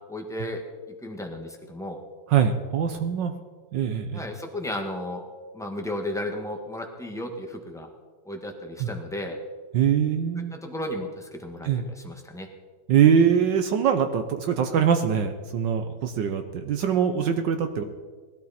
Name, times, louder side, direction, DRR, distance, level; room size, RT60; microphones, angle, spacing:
voice 1, 0.1-0.6 1.0-2.0 4.1-5.2 5.5-7.9 8.2-9.4 10.5-12.5, left 1 dB, ahead, 2 dB, 1.4 m, -34 dB
voice 2, 2.3-3.3 3.7-4.3 8.8-8.9 9.7-10.6 11.6-11.8 12.9-17.8, right 8 dB, 70° right, 7 dB, 1.5 m, -23 dB
19.5 x 12.5 x 4.3 m, 1.5 s
omnidirectional pair, 2.1 m